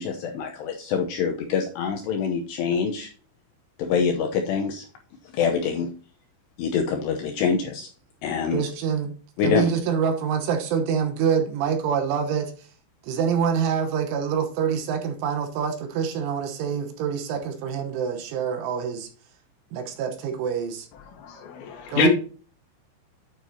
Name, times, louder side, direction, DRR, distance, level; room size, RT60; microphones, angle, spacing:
voice 1, 0.0-3.1 3.8-4.9 5.3-5.9 6.6-7.9 8.2-8.6 9.4-9.7, left 6 dB, 85° left, 2.4 m, -25 dB
voice 2, 8.5-9.1 9.4-12.7 13.0-19.1 19.7-20.9 21.9-22.1, right 7 dB, 75° right, 3.3 m, -26 dB
voice 3, 20.9-22.1, left 3 dB, 70° left, 3.3 m, -25 dB
9.6 x 9.4 x 2.8 m
omnidirectional pair, 5.9 m